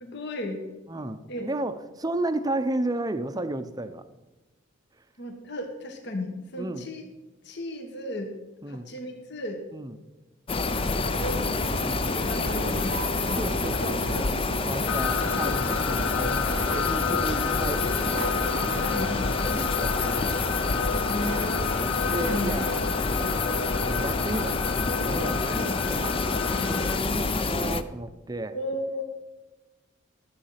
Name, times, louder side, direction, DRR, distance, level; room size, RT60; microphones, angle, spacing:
voice 1, 0.0-0.7 1.3-1.5 5.2-7.0 7.4-8.4 8.7-9.6 11.0-11.5 12.0-14.3 14.8-14.9 18.8-19.3 21.1-22.6 25.4-25.8 26.4-26.8 28.5-29.0, left 1 dB, 55° left, 4 dB, 1.5 m, -35 dB
voice 2, 0.9-4.0 6.6-6.9 8.6-8.9 9.7-10.0 11.8-12.1 13.4-14.2 14.6-16.5 16.7-18.2 18.7-18.9 19.4-20.5 22.1-22.8 23.8-26.1 26.7-28.6, right 2 dB, 20° right, 10 dB, 0.6 m, -33 dB
sound 1, 10.5-27.8, left 3 dB, 25° left, 0.5 m, -27 dB
sound 2, 10.7-24.5, right 4 dB, 70° right, 0.5 m, -39 dB
sound 3, 14.9-27.0, left 7 dB, 80° left, 0.5 m, -32 dB
13.0 x 7.9 x 5.8 m, 1.1 s
head